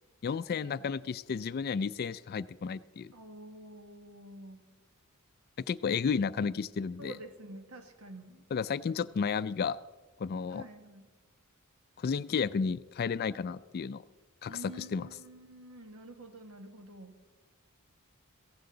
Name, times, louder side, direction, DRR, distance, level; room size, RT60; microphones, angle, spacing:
voice 1, 0.2-3.1 5.7-7.1 8.5-9.8 10.2-10.6 12.0-14.0 14.4-14.6 14.9-15.1, left 6 dB, 45° left, 16 dB, 0.3 m, -32 dB
voice 2, 3.1-4.6 7.0-8.4 10.5-11.1 14.5-17.2, right 1 dB, 75° right, 6 dB, 1.6 m, -48 dB
16.0 x 15.5 x 3.9 m, 1.2 s
head